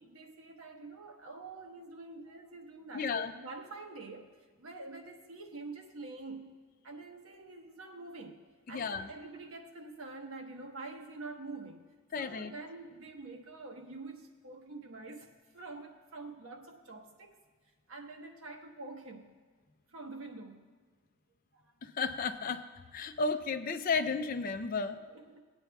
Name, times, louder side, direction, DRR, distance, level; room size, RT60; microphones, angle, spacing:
voice 1, 0.0-4.3 4.6-17.4 17.9-19.3 19.9-20.8 21.5-21.8 25.1-25.4, right 3 dB, 70° right, 3 dB, 1.1 m, -46 dB
voice 2, 2.9-3.3 8.7-9.1 12.1-12.5 21.8-22.6 22.9-25.0, left 4 dB, 40° left, 10 dB, 0.4 m, -33 dB
20.0 x 9.0 x 2.3 m, 1.4 s
head